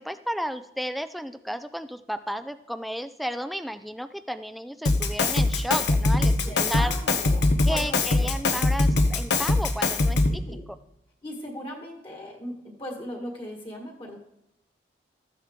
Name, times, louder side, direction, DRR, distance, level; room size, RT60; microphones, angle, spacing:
voice 1, 0.0-6.4 6.7-6.9 7.6-10.6, equal, ahead, 11 dB, 0.3 m, -33 dB
Drum kit, 4.9-10.5, left 2 dB, 70° left, 0.9 m, -22 dB
voice 2, 6.4-8.3 10.4-10.7 11.2-14.2, left 1 dB, 30° left, 1 dB, 1.6 m, -38 dB
13.5 x 9.3 x 3.6 m, 0.82 s
head